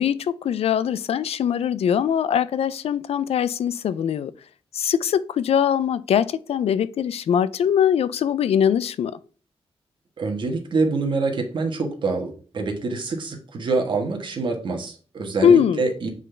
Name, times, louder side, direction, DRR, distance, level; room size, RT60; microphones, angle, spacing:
voice 1, 0.0-4.3 4.7-9.1 15.4-15.8, left 8 dB, 75° left, 0.4 m, -21 dB
voice 2, 10.2-16.1, right 3 dB, 50° right, 1.4 m, -26 dB
7.4 x 3.9 x 3.4 m
wide cardioid pair, 135°, 10 cm